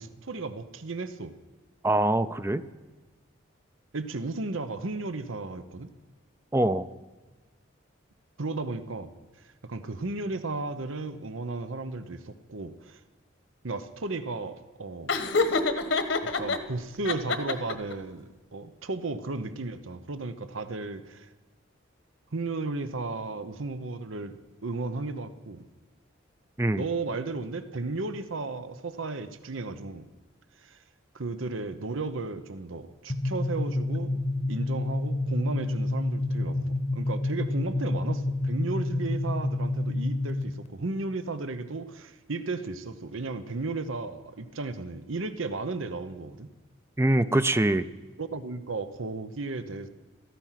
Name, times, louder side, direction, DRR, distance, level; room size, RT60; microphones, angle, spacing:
voice 1, 0.0-1.3 3.9-5.9 8.4-9.1 9.4-13.0 13.6-15.2 16.2-21.3 22.3-24.4 24.6-25.6 26.8-30.1 30.6-30.8 31.1-34.2 34.5-46.5 48.2-49.9, right 3 dB, 90° right, 11 dB, 0.9 m, -34 dB
voice 2, 1.8-2.6 6.5-6.9 26.6-26.8 47.0-47.9, right 1 dB, 15° right, 12 dB, 0.4 m, -24 dB
Laughter, 15.1-16.6 17.0-17.9, left 3 dB, 70° left, 1.4 m, -26 dB
sound 1, 33.1-40.7, left 2 dB, 35° left, 0.9 m, -29 dB
17.0 x 14.0 x 5.8 m, 1.2 s
head